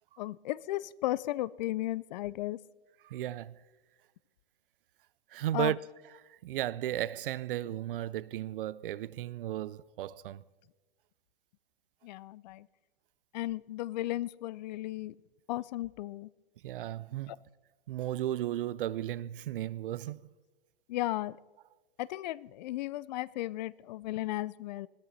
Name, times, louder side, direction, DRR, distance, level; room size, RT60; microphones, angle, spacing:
voice 1, 0.2-2.6 5.5-5.7 12.0-12.7 13.3-15.1 15.5-16.3 17.3-17.4 20.9-21.4 22.0-24.9, left 16 dB, 50° left, 0.5 m, -35 dB
voice 2, 3.0-3.6 5.3-5.9 6.3-10.4 16.6-17.4 17.9-20.2, right 13 dB, 65° right, 0.6 m, -35 dB
20.5 x 13.5 x 4.1 m
hypercardioid pair, 130°, 29 cm